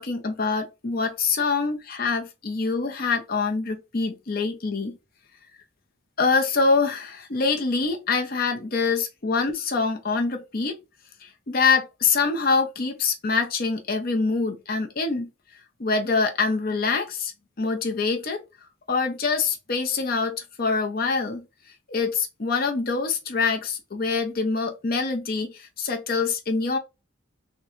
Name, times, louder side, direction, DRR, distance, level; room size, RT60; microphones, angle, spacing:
voice 1, 0.0-5.0 6.2-10.8 11.2-15.3 15.8-17.3 17.6-18.4 18.9-21.5 21.9-26.8, left 4 dB, 50° left, 0.7 m, -25 dB
3.7 x 2.2 x 3.0 m
head